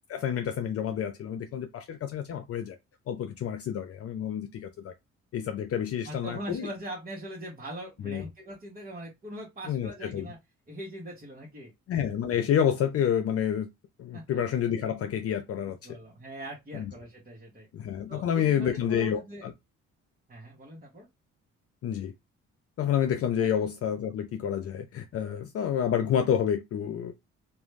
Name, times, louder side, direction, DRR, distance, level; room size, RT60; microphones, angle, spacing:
voice 1, 0.1-2.8 3.1-4.9 5.3-6.7 8.0-8.2 9.7-10.3 11.9-13.7 14.0-15.8 16.7-16.9 17.7-19.5 21.8-22.1 22.8-27.1, left 9 dB, 50° left, 0.4 m, -29 dB
voice 2, 6.0-10.4 10.7-11.7 14.1-14.2 15.6-17.7 18.1-19.5 20.3-21.1 23.4-23.5, right 1 dB, 30° right, 1.0 m, -41 dB
2.4 x 2.1 x 3.2 m
cardioid pair, 90°, 30 cm